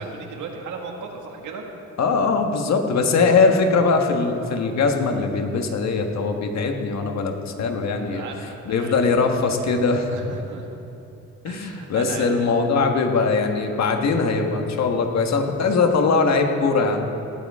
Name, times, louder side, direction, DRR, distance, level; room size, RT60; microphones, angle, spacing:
voice 1, 0.0-1.6 8.0-9.2 10.1-10.7 11.4-12.4 12.7-12.8, right 4 dB, 80° right, 1 dB, 2.0 m, -36 dB
voice 2, 2.0-8.2 8.6-10.1 11.4-17.1, left 4 dB, 60° left, 4 dB, 1.6 m, -21 dB
18.5 x 13.0 x 3.7 m, 2.9 s
cardioid pair, 90°, 30 cm